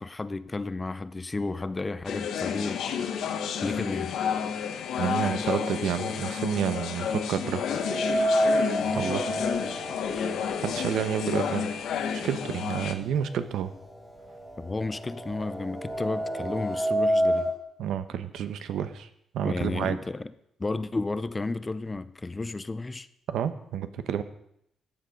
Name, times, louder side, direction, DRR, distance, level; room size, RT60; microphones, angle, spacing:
voice 1, 0.0-3.1 3.6-4.1 14.6-17.5 19.4-20.3 20.6-23.1, left 3 dB, 15° left, 0.5 m, -32 dB
sound 1, 2.1-12.9, left 7 dB, 70° left, 1.1 m, -30 dB
voice 2, 5.0-7.7 8.9-9.2 10.6-11.7 12.1-13.7 17.8-19.1 19.3-20.0 23.3-24.2, right 9 dB, 75° right, 1.0 m, -29 dB
sound 2, 7.8-11.8 12.2-12.3 13.2-13.3 13.7-17.6, equal, 5° right, 1.6 m, -29 dB
14.5 x 9.7 x 5.2 m
cardioid pair, 165°, 0 cm